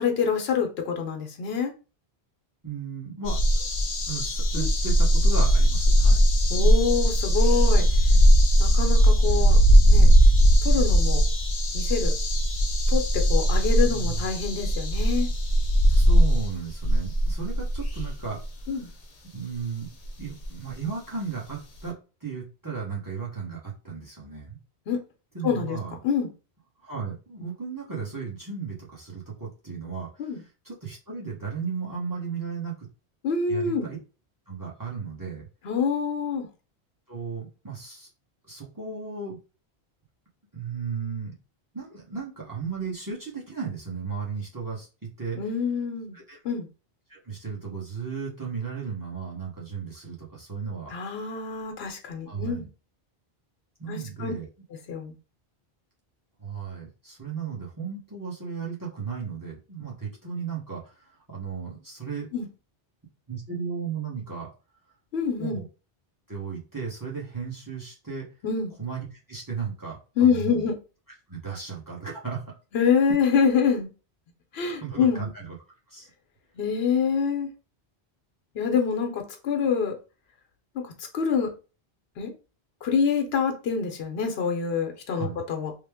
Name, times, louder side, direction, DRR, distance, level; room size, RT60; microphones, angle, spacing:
voice 1, 0.0-1.7 4.6-4.7 6.5-7.9 8.6-9.6 9.9-10.1 10.6-11.2 11.7-12.1 12.9-15.3 18.7-18.9 24.9-25.0 25.4-25.8 26.0-26.3 30.2-30.4 33.2-33.9 35.6-36.5 45.3-46.2 46.4-46.7 50.9-52.6 53.9-54.3 54.9-55.1 62.3-62.5 65.1-65.6 68.4-68.7 70.2-70.8 72.7-73.9 74.5-75.3 76.6-77.5 78.5-80.0 80.7-80.8 81.1-81.5 82.2-82.3 82.8-85.7, left 6 dB, 70° left, 4 dB, 0.9 m, -26 dB
voice 2, 2.6-3.7 4.1-6.2 13.8-14.3 15.9-18.4 18.7-18.8 19.3-19.9 20.2-22.0 22.2-24.6 25.3-26.0 26.8-32.9 33.5-34.0 34.5-35.5 37.1-38.1 38.5-39.4 40.5-41.3 41.7-45.4 46.1-46.4 47.1-50.9 52.3-52.7 53.8-54.5 56.4-61.0 61.3-62.3 63.3-64.5 65.4-65.6 66.3-68.3 68.8-70.7 71.3-72.4 74.8-75.6 75.9-76.1 85.1-85.4, right 5 dB, 20° right, -2 dB, 0.9 m, -35 dB
sound 1, 3.3-18.4 20.0-20.1 20.4-20.5, equal, 40° left, 0.7 m, -19 dB
3.2 x 2.1 x 3.4 m, 0.33 s
omnidirectional pair, 1.1 m